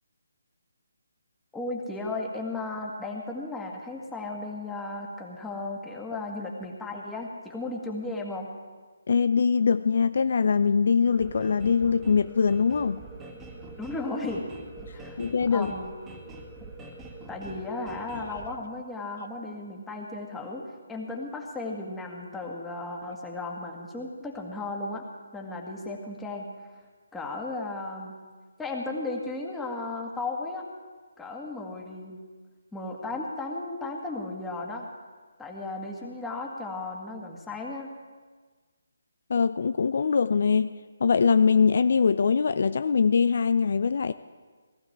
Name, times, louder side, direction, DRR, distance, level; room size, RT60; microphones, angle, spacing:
voice 1, 1.5-8.5 13.8-14.5 14.9-15.2 15.5-15.9 17.3-25.1 25.3-26.5 27.1-28.2 28.6-30.7 31.2-32.2 32.7-34.9 35.4-37.9, left 2 dB, 5° left, -1 dB, 1.9 m, -35 dB
voice 2, 9.1-13.0 15.2-15.7 39.3-40.7 41.0-44.1, left 5 dB, 55° left, 12 dB, 0.5 m, -22 dB
sound 1, 11.0-18.5, right 2 dB, 10° right, 1.7 m, -44 dB
18.5 x 14.5 x 4.7 m, 1.5 s
figure-of-eight pair, 150°, 0 cm